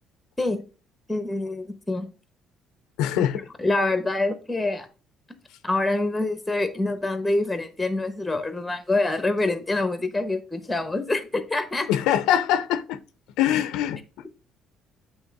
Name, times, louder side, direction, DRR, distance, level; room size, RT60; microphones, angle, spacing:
voice 1, 1.1-2.1 3.2-3.3 3.6-4.9 5.6-11.9, left 2 dB, 10° left, 1.1 m, -26 dB
voice 2, 3.0-3.4 11.9-13.0 13.4-14.0, left 11 dB, 90° left, 0.6 m, -23 dB
8.2 x 3.4 x 3.6 m
cardioid pair, 130°, 0 cm